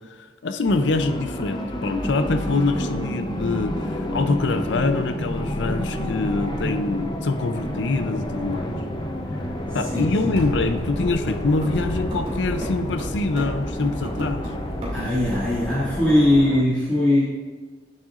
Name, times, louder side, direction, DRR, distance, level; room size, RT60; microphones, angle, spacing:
voice 1, 0.2-8.7 9.7-14.4, left 3 dB, 85° left, 9 dB, 0.6 m, -25 dB
sound 1, 0.7-16.6, left 1 dB, 25° left, 0.7 m, -29 dB
voice 2, 9.7-10.3 14.9-17.2, left 1 dB, 10° left, -11 dB, 2.1 m, -20 dB
sound 2, 10.3-16.1, equal, 35° right, 2.5 m, -34 dB
9.6 x 7.4 x 2.5 m, 1.3 s
head